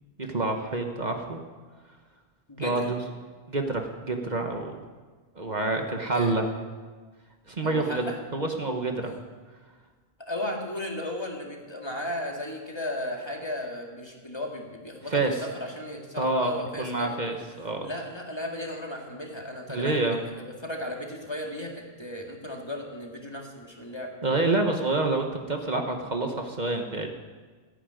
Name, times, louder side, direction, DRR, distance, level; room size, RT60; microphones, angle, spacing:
voice 1, 0.2-1.4 2.6-3.0 3.5-4.8 5.4-6.4 7.5-8.0 8.3-9.1 15.1-15.4 16.2-17.9 19.7-20.2 24.2-27.1, right 2 dB, 45° right, 3 dB, 1.4 m, -27 dB
voice 2, 2.5-2.9 6.1-6.3 7.6-8.2 10.2-17.3 17.8-24.1, left 1 dB, 25° left, 0 dB, 2.2 m, -35 dB
14.5 x 10.0 x 9.2 m, 1.4 s
omnidirectional pair, 1.0 m